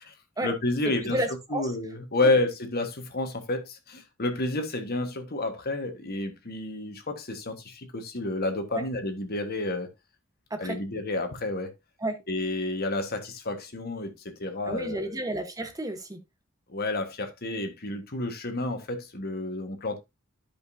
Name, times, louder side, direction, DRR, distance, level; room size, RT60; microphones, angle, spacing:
voice 1, 0.4-1.2 1.5-9.9 10.6-11.7 12.3-15.1 16.7-20.0, left 2 dB, 45° left, 1.4 m, -30 dB
voice 2, 1.0-1.7 2.2-2.3 8.7-8.8 10.5-10.8 12.0-12.2 14.6-16.2, right 1 dB, 15° right, 1.1 m, -31 dB
13.5 x 5.2 x 2.7 m
head